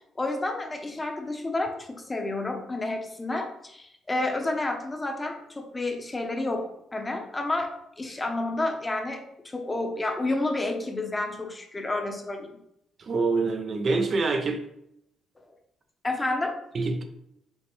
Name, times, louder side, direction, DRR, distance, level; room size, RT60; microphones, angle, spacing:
voice 1, 0.2-7.7 8.0-12.5 16.0-16.5, left 2 dB, 20° left, 4 dB, 0.8 m, -30 dB
voice 2, 13.0-14.6 16.7-17.0, right 3 dB, 50° right, 6 dB, 0.5 m, -25 dB
5.3 x 3.2 x 3.1 m, 0.78 s
cardioid pair, 90°, 0 cm